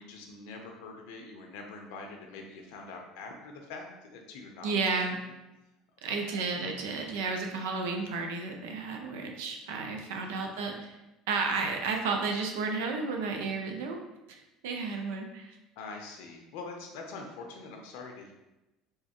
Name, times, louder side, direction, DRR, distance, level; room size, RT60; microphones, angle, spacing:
voice 1, 0.0-4.8 5.1-5.4 6.1-6.4 10.1-10.5 15.8-18.3, left 3 dB, 75° left, 2 dB, 0.5 m, -44 dB
voice 2, 4.6-5.2 6.0-11.0 11.3-14.0 14.3-15.6, right 4 dB, 85° right, 3 dB, 0.5 m, -32 dB
3.5 x 3.1 x 2.9 m, 0.98 s
supercardioid pair, 90°, 0 cm